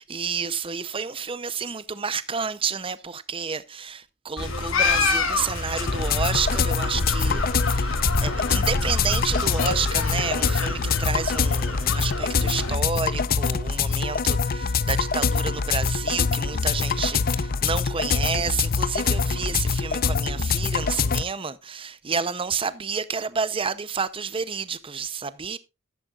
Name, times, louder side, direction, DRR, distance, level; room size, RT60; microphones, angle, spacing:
voice 1, 0.0-25.6, right 5 dB, 25° right, 0.6 m, -30 dB
sound 1, 4.4-12.8, left 3 dB, 85° left, 3.1 m, -27 dB
sound 2, 5.9-21.2, left 5 dB, 45° left, 0.6 m, -24 dB
13.0 x 11.0 x 2.4 m
head